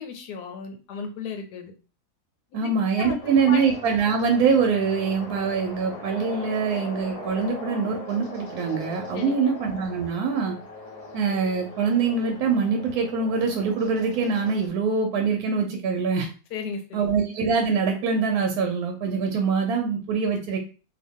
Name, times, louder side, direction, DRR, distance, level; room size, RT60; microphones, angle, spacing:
voice 1, 0.0-1.7 2.5-2.7 3.0-3.7 9.1-9.5 16.5-17.1, left 5 dB, 85° left, 5 dB, 1.3 m, -35 dB
voice 2, 2.5-10.5 11.1-16.3 16.9-20.6, right 5 dB, 75° right, 3 dB, 1.0 m, -24 dB
sound 1, 3.2-14.7, left 1 dB, 45° left, 0.4 m, -40 dB
2.8 x 2.5 x 3.5 m, 0.36 s
omnidirectional pair, 1.7 m